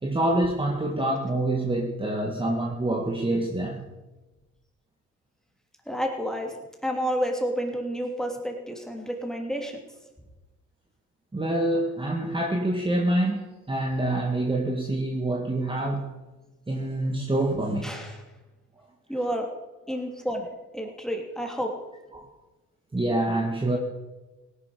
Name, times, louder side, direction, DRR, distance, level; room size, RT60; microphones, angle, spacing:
voice 1, 0.0-3.9 11.3-16.2 16.7-18.1 22.1-22.3 22.9-23.8, right 1 dB, 15° right, 1 dB, 1.8 m, -26 dB
voice 2, 5.9-6.5 6.8-9.8 17.8-18.2 19.1-19.5 19.9-20.5 20.7-21.7, equal, ahead, 2 dB, 3.0 m, -30 dB
17.5 x 11.0 x 5.2 m, 1.1 s
cardioid pair, 90°, 30 cm